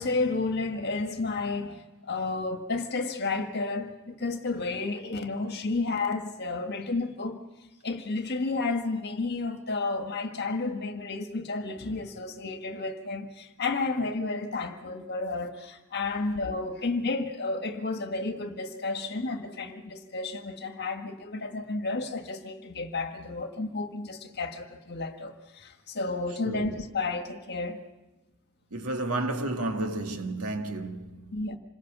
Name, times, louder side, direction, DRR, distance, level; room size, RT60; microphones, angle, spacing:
voice 1, 0.0-7.4 7.8-27.8 31.3-31.6, left 3 dB, 50° left, 1.7 m, -31 dB
voice 2, 26.5-26.8 28.7-31.4, right 2 dB, 80° right, 1.8 m, -32 dB
27.0 x 20.5 x 6.1 m
head